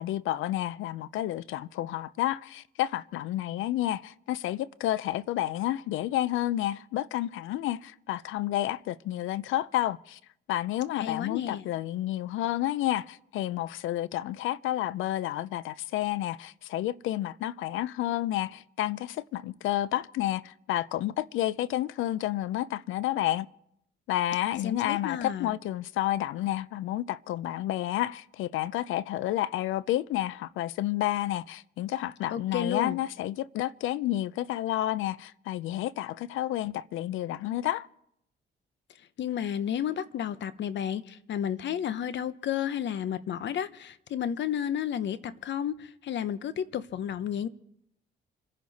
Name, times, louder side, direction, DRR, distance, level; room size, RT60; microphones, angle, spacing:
voice 1, 0.0-10.2 10.5-23.5 24.1-37.9, left 14 dB, 85° left, 0.5 m, -30 dB
voice 2, 10.9-11.6 24.6-25.5 32.3-33.0 39.2-47.5, left 9 dB, 65° left, 0.9 m, -32 dB
27.0 x 11.0 x 4.2 m
cardioid pair, 90°, 20 cm